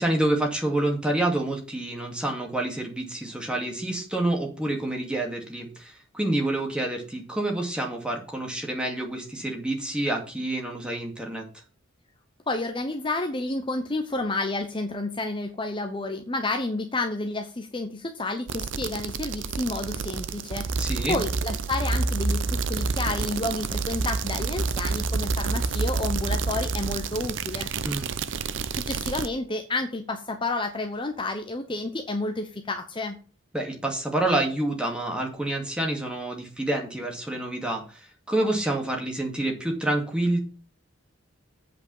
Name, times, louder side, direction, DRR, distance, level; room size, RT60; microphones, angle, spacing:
voice 1, 0.0-11.4 20.8-21.2 27.8-28.1 33.5-40.4, right 1 dB, 5° right, 1 dB, 2.3 m, -28 dB
voice 2, 12.5-27.7 28.7-33.2, left 2 dB, 25° left, 5 dB, 0.9 m, -30 dB
sound 1, 18.5-29.3, right 4 dB, 65° right, 0.7 m, -28 dB
8.4 x 5.3 x 7.2 m, 0.37 s
head